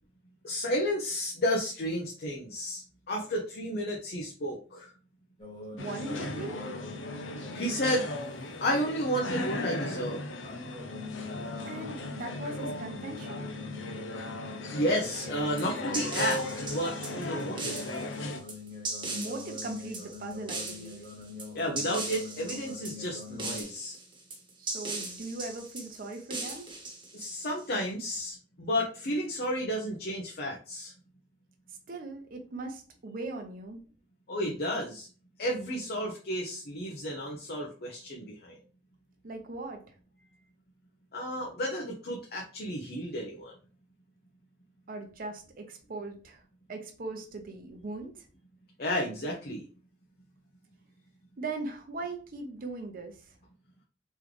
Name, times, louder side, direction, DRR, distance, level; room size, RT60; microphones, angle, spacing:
voice 1, 0.4-4.9 7.5-8.1 8.6-10.2 14.7-16.4 16.7-17.9 21.5-24.0 27.1-30.9 34.3-35.1 35.4-38.6 41.1-43.5 48.8-49.6, equal, 55° left, -1 dB, 0.7 m, -32 dB
sound 1, 5.4-8.9 10.4-23.6, left 4 dB, 30° left, 1.1 m, -44 dB
voice 2, 5.7-6.6 11.6-13.4 19.1-21.0 24.6-26.7 31.9-33.8 39.2-39.9 44.9-46.4 46.7-48.3 51.4-53.3, right 2 dB, 50° right, 3 dB, 0.7 m, -39 dB
sound 2, 5.8-18.4, left 1 dB, 90° left, 0.7 m, -37 dB
sound 3, 15.6-27.8, right 2 dB, 25° right, 1.1 m, -39 dB
3.7 x 3.2 x 3.1 m, 0.38 s
head